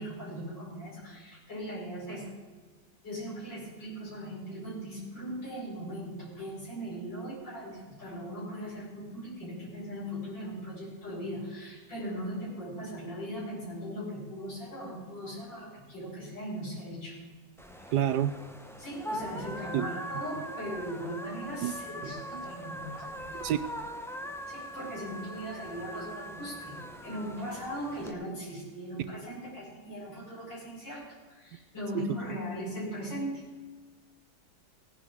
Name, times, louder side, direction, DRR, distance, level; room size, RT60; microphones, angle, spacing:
voice 1, 0.0-2.3 3.0-17.2 18.8-23.4 24.5-33.4, equal, 85° left, -8 dB, 5.9 m, -39 dB
sound 1, 17.6-28.1, equal, 5° left, 0.4 m, -41 dB
voice 2, 17.9-18.3 19.7-19.9 21.6-21.7 22.0-22.1 23.3-23.6 31.9-32.4, right 11 dB, 70° right, 12 dB, 1.1 m, -29 dB
18.0 x 10.0 x 4.9 m, 1.4 s
omnidirectional pair, 1.9 m